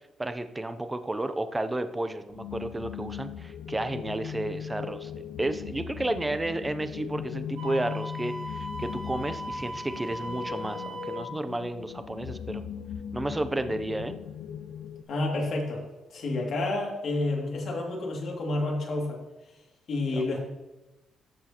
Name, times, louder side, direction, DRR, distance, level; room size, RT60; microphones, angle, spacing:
voice 1, 0.2-12.6 13.1-14.1 20.1-20.2, right 2 dB, 15° right, 10 dB, 0.5 m, -32 dB
sound 1, 2.3-15.0, left 8 dB, 70° left, 0.5 m, -39 dB
Wind instrument woodwind instrument, 7.6-11.3, equal, 80° right, 2.6 m, -38 dB
voice 2, 15.1-15.8 16.1-19.2 19.9-20.4, left 2 dB, 55° left, -2 dB, 2.5 m, -29 dB
14.0 x 6.1 x 2.9 m, 1.0 s
cardioid pair, 135°, 0 cm